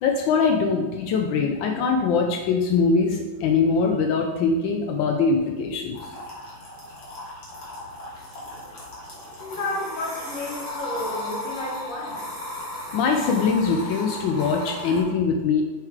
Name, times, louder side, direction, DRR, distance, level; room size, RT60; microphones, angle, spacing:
voice 1, 0.0-6.0 12.9-15.6, left 5 dB, 85° left, 3 dB, 1.3 m, -22 dB
sound 1, 5.9-15.0, left 1 dB, 70° left, 2.3 m, -35 dB
voice 2, 9.4-12.2, left 1 dB, 45° left, -3 dB, 1.8 m, -32 dB
7.7 x 4.6 x 3.6 m, 1.3 s
omnidirectional pair, 2.0 m